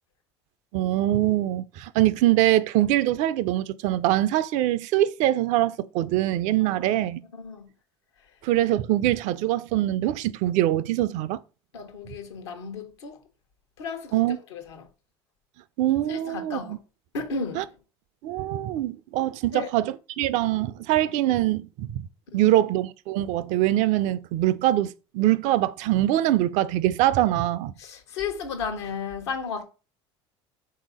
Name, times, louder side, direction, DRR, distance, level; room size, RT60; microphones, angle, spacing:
voice 1, 0.7-7.2 8.4-11.4 14.1-14.4 15.8-16.8 17.6-17.7 18.2-22.1 22.3-27.7, right 14 dB, 60° right, 0.4 m, -23 dB
voice 2, 6.6-7.1 7.3-7.7 11.7-13.2 13.8-14.9 16.1-16.7 17.1-17.7 19.5-19.7 22.3-22.5 27.8-29.6, left 5 dB, 80° left, 1.0 m, -34 dB
3.7 x 2.8 x 4.8 m
hypercardioid pair, 75°, 14 cm